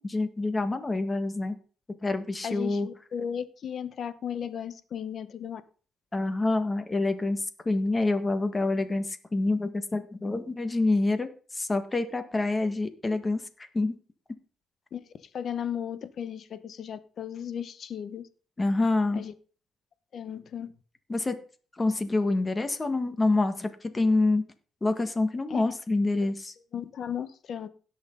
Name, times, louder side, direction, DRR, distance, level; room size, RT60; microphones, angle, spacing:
voice 1, 0.0-1.5 2.0-2.9 6.1-13.9 18.6-19.2 21.1-21.3 21.8-24.4 24.8-26.5, left 2 dB, 25° left, 1.6 m, -27 dB
voice 2, 2.4-5.6 14.9-18.3 19.1-19.3 20.1-20.7 25.5-25.7 26.2-26.3 26.7-27.7, left 8 dB, 60° left, 1.0 m, -35 dB
17.0 x 6.3 x 3.9 m
cardioid pair, 90°, 0 cm